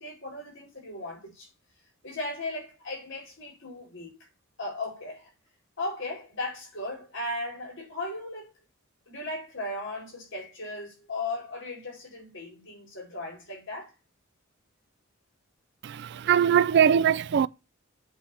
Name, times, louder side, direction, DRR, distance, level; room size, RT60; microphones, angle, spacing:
voice 1, 0.0-1.5 2.0-4.1 4.6-5.3 5.8-8.5 9.1-13.9, left 2 dB, 65° left, 4.2 m, -36 dB
voice 2, 15.8-17.5, right 8 dB, 55° right, 0.3 m, -21 dB
8.3 x 3.4 x 5.7 m
head